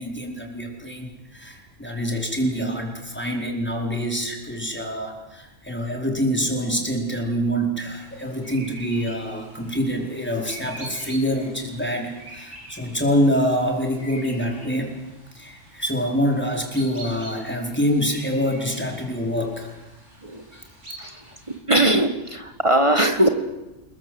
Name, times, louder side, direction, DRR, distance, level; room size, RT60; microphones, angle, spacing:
voice 1, 0.0-14.9 15.3-19.7 20.5-20.6, equal, 10° left, 1 dB, 4.6 m, -25 dB
sound 1, 8.0-21.6, right 1 dB, 70° right, 7.5 m, -45 dB
voice 2, 21.7-23.3, right 1 dB, 25° right, 6 dB, 1.8 m, -19 dB
28.0 x 22.0 x 7.9 m, 1.0 s
omnidirectional pair, 1.3 m